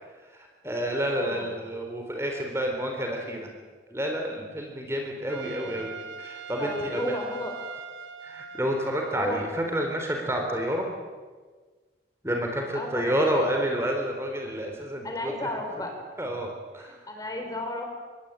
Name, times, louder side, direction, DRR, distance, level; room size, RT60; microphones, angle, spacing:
voice 1, 0.3-3.5 3.9-7.1 8.2-10.9 12.2-15.3 16.2-17.0, equal, 15° right, 2 dB, 3.9 m, -29 dB
voice 2, 1.2-1.5 5.6-5.9 6.6-7.5 9.2-9.4 12.7-13.4 15.0-15.9 16.8-18.1, left 1 dB, 20° left, 3 dB, 4.7 m, -34 dB
Trumpet, 5.3-9.9, right 5 dB, 90° right, 1.8 m, -42 dB
26.0 x 20.5 x 9.1 m, 1.4 s
head